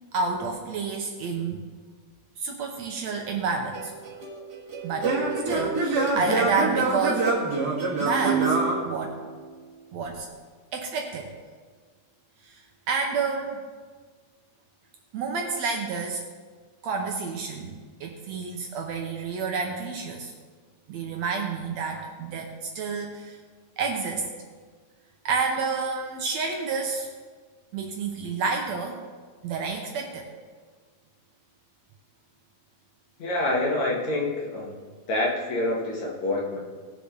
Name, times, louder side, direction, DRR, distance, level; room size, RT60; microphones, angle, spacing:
voice 1, 0.1-1.6 2.4-3.9 4.8-5.1 5.4-7.3 8.0-9.1 9.9-10.3 10.7-11.3 12.4-13.6 15.1-16.2 16.8-17.7 18.0-20.3 20.9-23.4 23.8-24.3 25.3-27.1 27.7-29.0 29.4-30.3, right 4 dB, 70° right, 2 dB, 1.9 m, -29 dB
Singing / Plucked string instrument, 3.7-9.6, right 3 dB, 35° right, 2.0 m, -26 dB
voice 2, 33.2-34.8 35.1-36.6, left 2 dB, 60° left, -3 dB, 3.0 m, -27 dB
18.5 x 6.7 x 3.9 m, 1.5 s
omnidirectional pair, 3.7 m